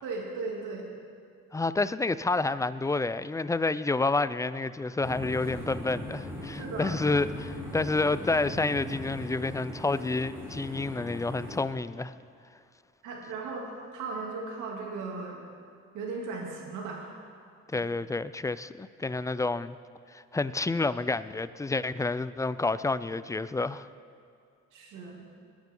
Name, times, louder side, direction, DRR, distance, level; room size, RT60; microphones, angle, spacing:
voice 1, 0.0-0.9 6.5-7.0 13.0-15.4 15.9-17.1 17.7-17.9 24.7-25.2, right 3 dB, 85° right, -2 dB, 2.8 m, -37 dB
voice 2, 1.5-12.1 17.7-19.8 20.1-23.9, left 3 dB, 10° left, 15 dB, 0.4 m, -29 dB
sound 1, 5.0-11.6, left 1 dB, 10° right, 3.7 m, -39 dB
21.0 x 11.0 x 3.8 m, 2.3 s
cardioid pair, 90°, 30 cm